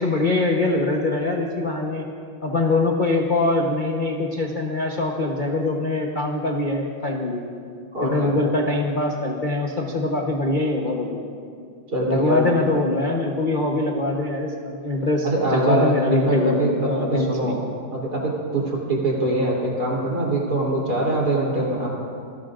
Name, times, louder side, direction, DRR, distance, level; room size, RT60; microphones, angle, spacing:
voice 1, 0.0-2.0 2.4-7.4 8.0-11.2 12.1-15.3 15.5-17.5, left 2 dB, 35° left, 0 dB, 0.8 m, -23 dB
voice 2, 7.9-8.4 11.9-12.5 15.2-17.6 17.9-21.9, right 2 dB, 45° right, -4 dB, 3.9 m, -23 dB
26.5 x 17.0 x 2.6 m, 2.4 s
omnidirectional pair, 2.3 m